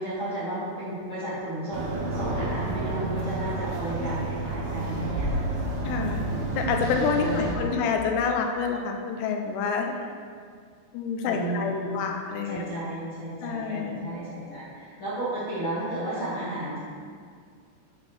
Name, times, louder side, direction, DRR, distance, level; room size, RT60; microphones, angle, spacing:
voice 1, 0.0-5.4 7.2-7.9 11.2-11.9 12.4-16.8, right 1 dB, 50° left, -12 dB, 1.5 m, -33 dB
sound 1, 1.7-7.5, right 2 dB, 70° right, 2.4 m, -30 dB
voice 2, 5.9-6.2 6.6-9.9 10.9-12.7 13.4-14.1, left 5 dB, 90° left, 3 dB, 2.9 m, -28 dB
8.4 x 4.4 x 6.0 m, 2.1 s
omnidirectional pair, 4.8 m